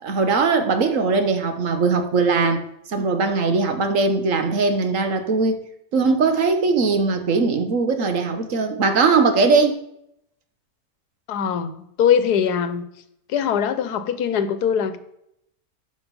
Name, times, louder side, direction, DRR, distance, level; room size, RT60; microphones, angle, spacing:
voice 1, 0.0-2.6 2.9-5.6 5.9-9.8, right 4 dB, 60° right, 7 dB, 1.4 m, -20 dB
voice 2, 11.3-12.8 13.3-15.0, left 8 dB, 85° left, 12 dB, 1.4 m, -22 dB
12.0 x 5.2 x 5.2 m, 0.76 s
omnidirectional pair, 1.6 m